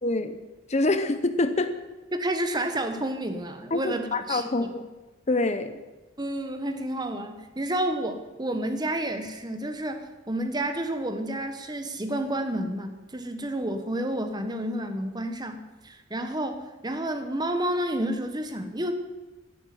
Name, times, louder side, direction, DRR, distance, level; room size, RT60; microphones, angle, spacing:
voice 1, 0.0-0.4 0.7-1.8 3.7-4.9 5.3-5.7, left 2 dB, 35° left, 10 dB, 0.8 m, -26 dB
voice 2, 2.1-4.7 6.2-18.9, right 1 dB, 20° right, 7 dB, 1.3 m, -30 dB
12.5 x 11.0 x 9.5 m, 1.1 s
head